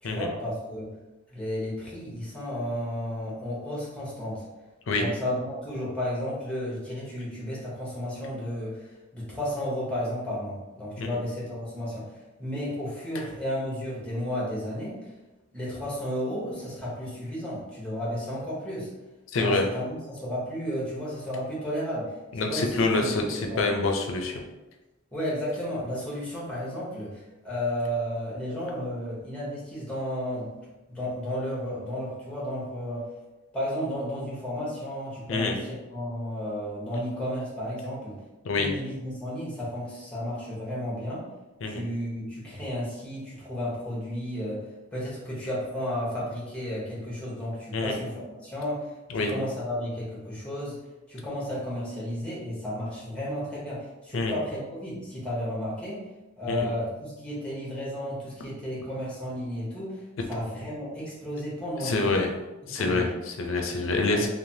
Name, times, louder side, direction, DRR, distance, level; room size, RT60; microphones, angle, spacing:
voice 1, 0.0-0.9 1.3-4.4 4.9-12.1 12.4-15.1 15.5-18.9 19.3-23.7 25.1-30.6 30.9-33.1 33.5-38.2 38.6-41.2 41.6-50.8 51.1-56.0 56.4-62.3 62.6-63.1 64.1-64.3, equal, 5° left, -6 dB, 0.8 m, -33 dB
voice 2, 19.3-19.6 22.3-24.4 35.3-35.6 38.4-38.7 41.6-41.8 47.7-48.0 49.1-49.4 54.1-54.3 56.5-56.7 61.8-62.3 62.7-64.3, left 3 dB, 70° left, 3 dB, 0.4 m, -26 dB
3.2 x 2.0 x 2.7 m, 1.1 s
head